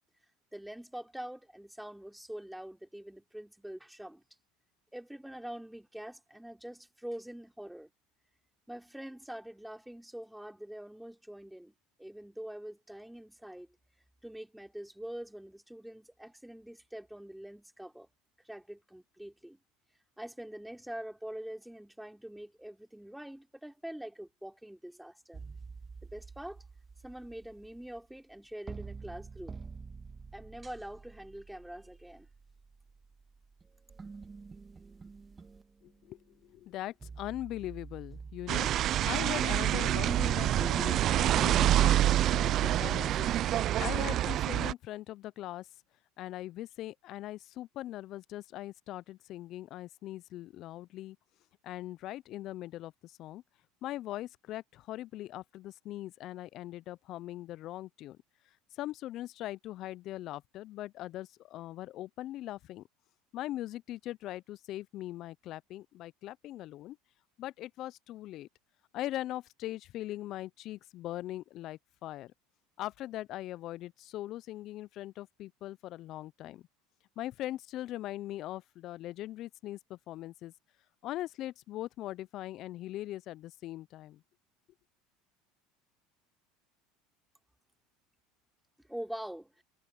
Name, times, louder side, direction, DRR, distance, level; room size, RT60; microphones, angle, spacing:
voice 1, 0.5-4.2 4.9-7.9 8.7-13.7 14.2-18.1 18.4-19.6 20.2-25.4 26.0-26.6 27.0-29.6 30.3-32.3 88.9-89.6, right 1 dB, 5° right, 4.0 m, -44 dB
sound 1, 25.3-28.4 28.7-36.2 37.0-43.7, right 4 dB, 20° right, 1.6 m, -48 dB
voice 2, 35.8-38.7 39.0-45.7 46.2-51.2 51.6-53.4 53.8-58.2 58.7-62.8 63.3-67.0 67.4-68.5 68.9-72.3 72.8-76.6 77.2-80.5 81.0-84.2, left 14 dB, 55° left, 0.5 m, -41 dB
sound 2, 38.5-44.7, right 12 dB, 50° right, 0.4 m, -27 dB
supercardioid pair, 95°, 0 cm